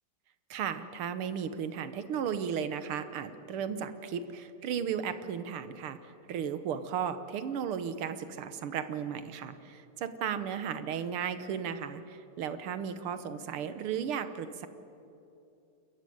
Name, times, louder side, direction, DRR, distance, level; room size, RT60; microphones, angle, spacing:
voice 1, 0.5-14.7, right 8 dB, 85° right, 11 dB, 2.0 m, -35 dB
29.0 x 14.0 x 9.3 m, 2.8 s
omnidirectional pair, 2.3 m